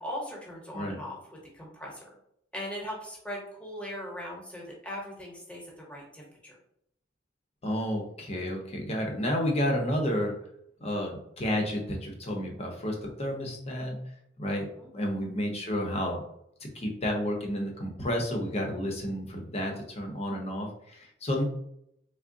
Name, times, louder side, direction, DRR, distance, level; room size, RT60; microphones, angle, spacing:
voice 1, 0.0-2.0 2.5-6.6 14.8-14.9, equal, 5° left, -3 dB, 1.0 m, -39 dB
voice 2, 7.6-10.3 10.8-14.0 14.4-14.7 14.9-16.2 16.6-21.4, equal, 35° left, 1 dB, 0.7 m, -31 dB
3.5 x 2.1 x 3.7 m, 0.75 s
head